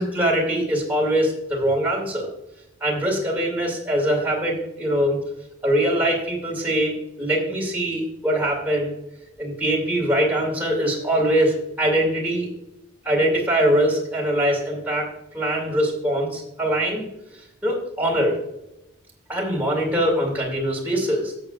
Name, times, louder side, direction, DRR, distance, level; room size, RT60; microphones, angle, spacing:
voice 1, 0.0-2.3 2.8-5.2 5.6-8.9 9.4-12.5 13.0-15.1 15.3-17.0 17.3-18.4 19.3-21.3, right 1 dB, 10° right, -3 dB, 2.3 m, -22 dB
13.5 x 7.9 x 2.4 m, 0.86 s
head